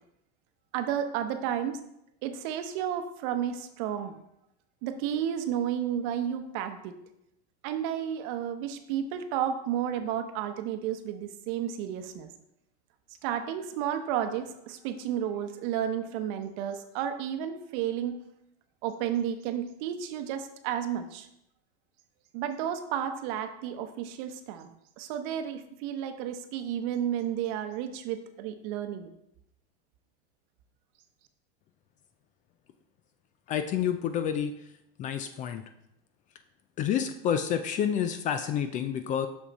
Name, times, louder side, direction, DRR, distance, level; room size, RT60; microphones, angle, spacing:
voice 1, 0.7-1.8 2.2-4.2 4.8-7.0 7.6-12.3 13.2-18.2 18.8-21.3 22.3-24.7 25.0-29.1, right 9 dB, 55° right, 8 dB, 0.8 m, -32 dB
voice 2, 33.5-34.5 35.0-35.6 36.8-39.3, left 9 dB, 25° left, 9 dB, 0.3 m, -29 dB
6.3 x 5.9 x 4.1 m, 0.79 s
supercardioid pair, 135°, 29 cm